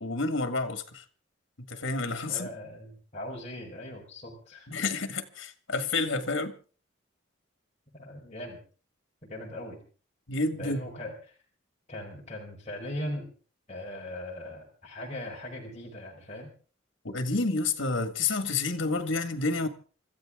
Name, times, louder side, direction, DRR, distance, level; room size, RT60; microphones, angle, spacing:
voice 1, 0.0-1.0 1.7-2.5 4.7-6.5 10.3-10.9 17.0-19.7, left 3 dB, 90° left, 1.8 m, -29 dB
voice 2, 2.3-4.7 7.9-8.6 9.2-9.8 10.5-11.3 11.9-13.3 13.7-16.5, left 1 dB, 35° left, 4.7 m, -39 dB
26.0 x 14.0 x 3.7 m
head